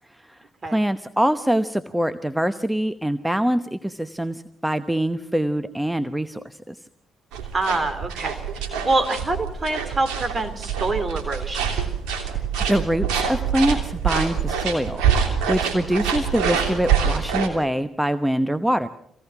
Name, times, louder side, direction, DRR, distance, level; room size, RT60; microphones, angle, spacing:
voice 1, 0.2-6.8 12.3-15.0 15.5-18.9, equal, 5° right, 11 dB, 1.0 m, -24 dB
sound 1, 7.3-17.5, right 7 dB, 75° right, 3.1 m, -25 dB
voice 2, 7.5-11.8, right 2 dB, 40° right, 10 dB, 3.3 m, -26 dB
26.0 x 17.5 x 6.0 m, 0.72 s
hypercardioid pair, 45°, 0 cm